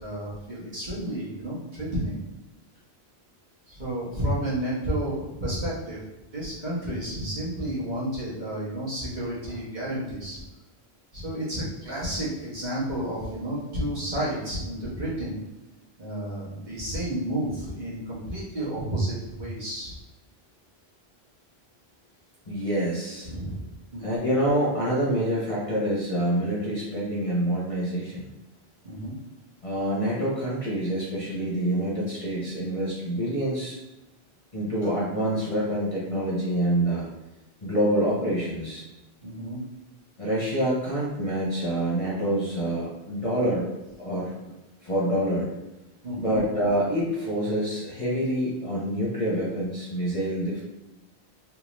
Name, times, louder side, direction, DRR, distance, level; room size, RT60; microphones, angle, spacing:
voice 1, 0.0-2.2 3.7-6.0 6.3-10.4 11.1-15.4 16.0-19.9 23.2-23.6 23.9-24.2 28.8-29.1 39.2-39.6 46.0-46.4, right 1 dB, 45° right, -8 dB, 1.3 m, -31 dB
voice 2, 22.5-23.3 24.0-28.3 29.6-33.8 34.5-37.0 37.6-38.8 40.2-43.7 44.0-44.3 44.8-45.5 46.2-50.6, right 1 dB, 35° left, -7 dB, 0.8 m, -26 dB
3.5 x 2.7 x 3.0 m, 1.0 s
omnidirectional pair, 1.1 m